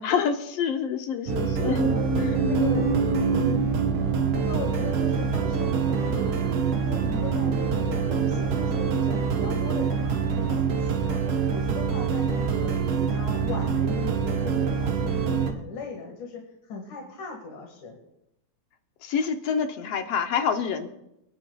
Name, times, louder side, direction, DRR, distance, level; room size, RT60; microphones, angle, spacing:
voice 1, 0.0-1.8 2.2-2.4 19.0-20.9, left 7 dB, 70° left, 6 dB, 1.7 m, -27 dB
voice 2, 1.2-2.1 2.5-2.9 3.2-3.8 4.1-6.3 6.9-11.2 11.5-18.0, left 3 dB, 90° left, 0 dB, 3.4 m, -38 dB
sound 1, 1.3-15.5, right 6 dB, 60° right, 1.9 m, -25 dB
sound 2, 1.6-11.6, right 2 dB, 75° right, 2.3 m, -32 dB
23.5 x 11.0 x 2.3 m, 0.82 s
omnidirectional pair, 3.3 m